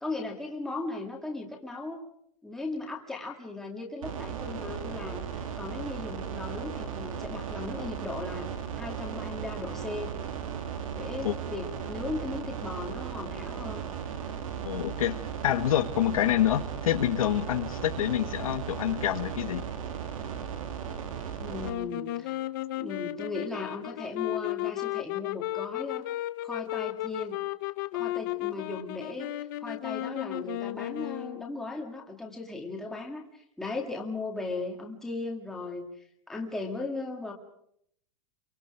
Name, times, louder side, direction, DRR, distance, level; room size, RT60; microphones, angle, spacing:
voice 1, 0.0-2.0 2.4-8.5 8.8-10.1 10.9-13.9 21.4-22.4 22.8-26.1 26.4-27.4 27.9-37.3, left 3 dB, ahead, -1 dB, 2.1 m, -37 dB
sound 1, 4.0-21.7, right 7 dB, 75° right, 3.0 m, -36 dB
voice 2, 14.6-19.6, left 12 dB, 90° left, 8 dB, 1.8 m, -27 dB
sound 2, 21.6-31.6, left 17 dB, 35° left, 0.8 m, -34 dB
30.0 x 23.5 x 5.0 m, 0.69 s
supercardioid pair, 175°, 17 cm